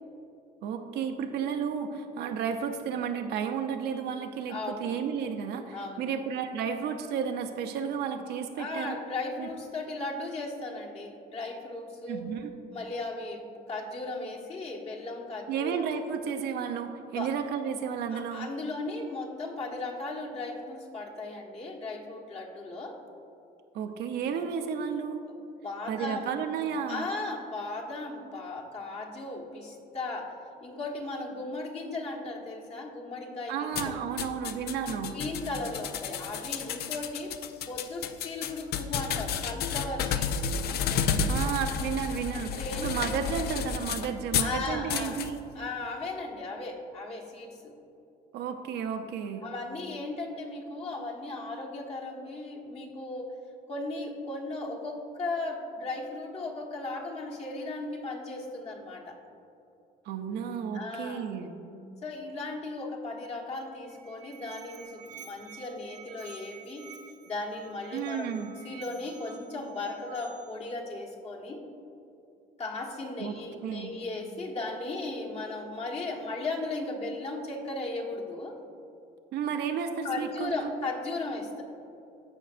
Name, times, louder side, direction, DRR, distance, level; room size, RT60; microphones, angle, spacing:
voice 1, 0.6-9.0 9.4-9.5 12.1-12.5 15.5-18.5 23.7-25.2 25.9-27.1 33.5-35.2 41.3-45.4 48.3-49.4 60.0-61.5 67.9-68.6 73.2-74.0 79.3-80.7, right 7 dB, 75° right, 6 dB, 0.7 m, -32 dB
voice 2, 4.5-5.0 5.7-6.1 8.5-12.3 12.7-15.7 17.1-17.3 18.1-23.0 25.3-25.4 25.6-26.3 26.9-30.3 30.6-34.0 35.1-37.3 37.7-40.5 42.3-42.9 44.4-45.2 45.5-47.7 49.4-53.3 53.7-59.2 60.7-61.3 62.0-66.9 67.2-71.6 72.6-78.6 80.0-81.6, left 2 dB, 40° left, -1 dB, 1.3 m, -36 dB
sound 1, 33.7-44.6 44.9-45.3, left 6 dB, 70° left, 0.5 m, -31 dB
Musical instrument, 63.7-70.7, right 7 dB, 45° right, 0.8 m, -50 dB
14.5 x 5.3 x 2.5 m, 2.7 s
cardioid pair, 110°, 17 cm